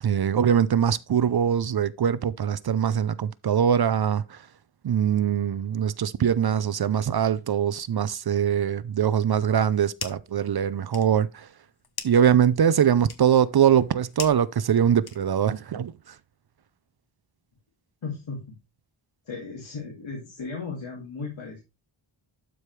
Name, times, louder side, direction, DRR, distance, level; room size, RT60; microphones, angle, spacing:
voice 1, 0.0-4.4 4.8-11.5 12.0-16.2, right 8 dB, 50° right, 0.5 m, -22 dB
sound 1, 9.5-10.4 10.7-15.6, left 5 dB, 50° left, 1.1 m, -41 dB
voice 2, 18.0-18.6 19.3-21.6, left 4 dB, 65° left, 2.3 m, -36 dB
12.0 x 5.1 x 3.2 m
wide cardioid pair, 120°, 49 cm